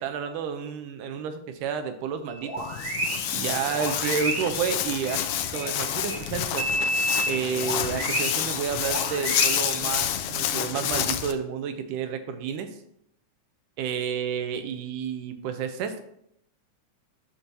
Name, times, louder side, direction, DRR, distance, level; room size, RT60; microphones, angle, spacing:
voice 1, 0.0-2.7 3.3-5.2 5.5-6.7 7.3-12.7 13.8-16.0, right 7 dB, 90° right, 8 dB, 2.2 m, -30 dB
sound 1, 2.3-6.2 6.6-9.8, right 1 dB, 40° right, 1.5 m, -31 dB
Walk footsteps, 2.6-11.3, left 11 dB, 80° left, 2.0 m, -29 dB
8.7 x 6.1 x 2.8 m, 0.74 s
omnidirectional pair, 3.6 m